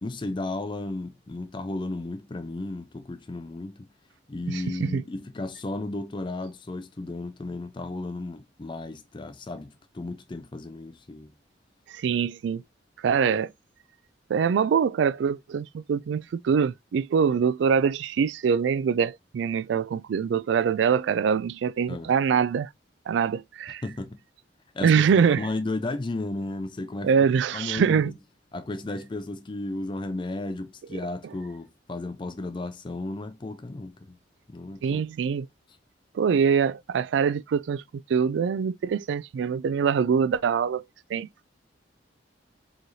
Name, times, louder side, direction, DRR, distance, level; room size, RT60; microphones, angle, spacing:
voice 1, 0.0-3.9 4.3-11.3 21.9-22.1 23.8-24.2 24.7-27.1 27.5-28.1 28.5-34.2 34.5-35.0, left 2 dB, 25° left, 0.4 m, -34 dB
voice 2, 4.5-5.0 11.9-12.6 13.0-13.5 14.3-22.7 23.1-23.8 24.8-25.5 27.0-28.1 34.8-35.5 36.1-37.8 38.1-40.8 41.1-41.3, right 6 dB, 70° right, 0.3 m, -24 dB
4.7 x 3.1 x 2.7 m
head